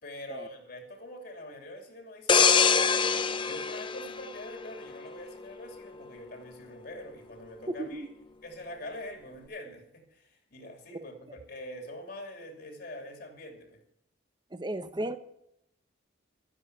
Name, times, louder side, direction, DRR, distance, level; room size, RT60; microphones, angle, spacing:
voice 1, 0.0-8.1 8.4-13.8, left 1 dB, 55° left, 2.8 m, -44 dB
sound 1, 2.3-5.0 5.4-5.6, left 6 dB, 25° left, 0.6 m, -24 dB
voice 2, 7.8-8.1 14.5-15.2, right 1 dB, 20° right, 0.8 m, -35 dB
12.0 x 10.0 x 6.9 m
head